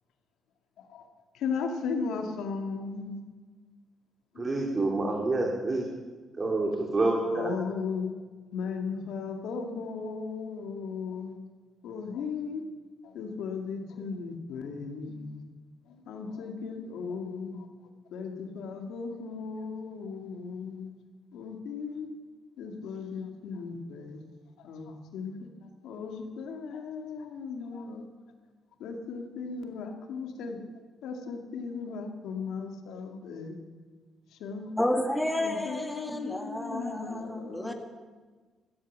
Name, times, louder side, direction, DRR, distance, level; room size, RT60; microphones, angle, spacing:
voice 1, 1.3-3.2 4.3-4.5 7.3-8.1 8.5-11.4 11.8-12.6 13.0-15.4 15.9-17.7 18.1-20.9 21.3-22.1 22.6-24.2 24.6-25.4 25.8-28.0 28.8-30.6 31.0-33.5 34.3-34.7 35.3-37.7, left 5 dB, 85° left, 4 dB, 2.2 m, -36 dB
voice 2, 4.4-5.9 6.4-7.5, right 2 dB, 35° right, 0 dB, 2.6 m, -27 dB
voice 3, 34.8-37.7, left 1 dB, 5° left, 4 dB, 1.9 m, -31 dB
14.0 x 13.5 x 7.5 m, 1.4 s
cardioid pair, 90°, 0 cm